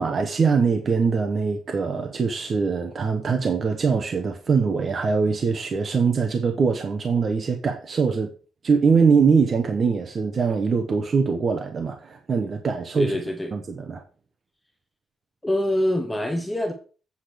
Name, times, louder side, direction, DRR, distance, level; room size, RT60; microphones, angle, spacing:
voice 1, 0.0-8.3 8.6-13.2 13.5-14.0, right 5 dB, 35° right, 1.0 m, -22 dB
voice 2, 13.0-13.5 15.4-16.7, left 1 dB, 10° left, 0.9 m, -25 dB
8.3 x 5.0 x 6.2 m
cardioid pair, 170°, 0 cm